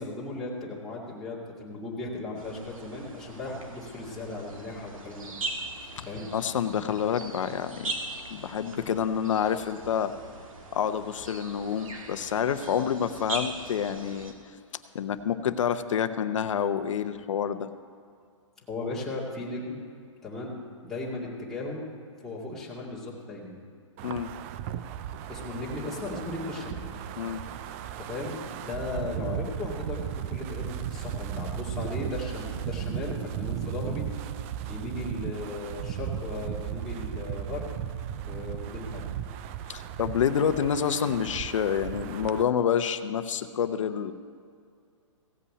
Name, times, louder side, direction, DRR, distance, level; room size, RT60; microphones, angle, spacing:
voice 1, 0.0-5.3 6.1-6.3 18.7-19.8 20.2-20.5 20.8-21.8 22.2-23.6 25.3-26.9 28.0-34.1 34.7-37.7 38.3-39.1, left 2 dB, ahead, -7 dB, 2.1 m, -36 dB
sound 1, 2.3-14.3, right 2 dB, 85° right, 2.0 m, -40 dB
voice 2, 6.3-7.9 8.3-10.1 10.7-14.3 14.9-17.7 24.0-24.3 27.2-27.4 39.7-44.1, left 8 dB, 70° left, 11 dB, 0.8 m, -28 dB
Wind, 24.0-42.4, right 10 dB, 25° right, 0.4 m, -36 dB
16.5 x 5.6 x 8.4 m, 2.2 s
hypercardioid pair, 150°, 17 cm